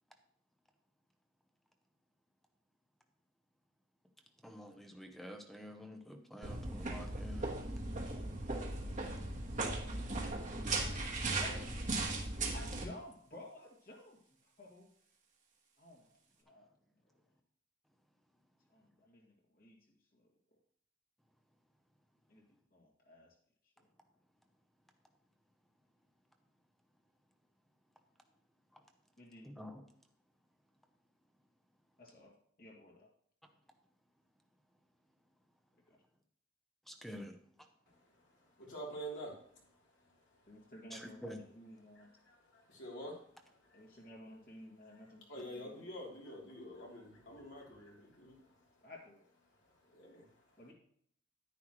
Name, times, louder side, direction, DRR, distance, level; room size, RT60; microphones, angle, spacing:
voice 1, 4.4-7.5 28.7-28.8 29.4-29.8 36.9-37.4 40.9-41.4, equal, ahead, 5 dB, 0.9 m, -48 dB
sound 1, 6.4-12.8, right 2 dB, 45° right, 1.4 m, -38 dB
voice 2, 12.5-14.9 15.8-16.0 16.4-16.7 18.7-19.8 20.1-20.3 22.3-22.4 22.7-23.3 29.2-29.5 32.0-32.3 32.6-33.1 35.9-36.0 40.5-42.1 43.7-45.9 48.8-49.2 50.6-50.7, left 1 dB, 50° left, -3 dB, 2.2 m, -54 dB
voice 3, 37.9-40.7 41.9-44.0 45.3-48.8 49.7-50.5, right 1 dB, 70° left, -3 dB, 3.3 m, -49 dB
10.5 x 9.8 x 3.1 m, 0.63 s
head